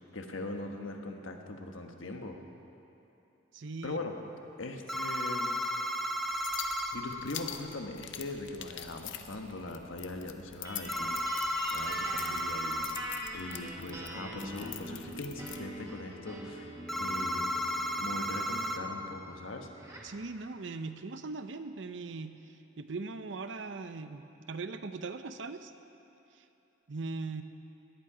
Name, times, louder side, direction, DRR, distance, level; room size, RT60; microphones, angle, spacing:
voice 1, 0.1-2.4 3.8-4.1 4.6-5.5 6.9-11.4 11.7-12.9 13.3-16.7 17.0-17.5 18.0-19.7, left 2 dB, 85° left, 3 dB, 1.3 m, -40 dB
voice 2, 3.5-4.0 20.0-25.7 26.3-26.4 26.9-27.4, right 3 dB, 65° right, 10 dB, 0.6 m, -40 dB
sound 1, 4.9-7.0 10.9-13.0 16.9-18.8, equal, ahead, 0.6 m, -33 dB
sound 2, 6.3-15.6, left 10 dB, 65° left, 0.8 m, -45 dB
sound 3, 10.6-20.2, right 1 dB, 15° right, 1.6 m, -44 dB
18.0 x 11.5 x 5.0 m, 2.9 s
head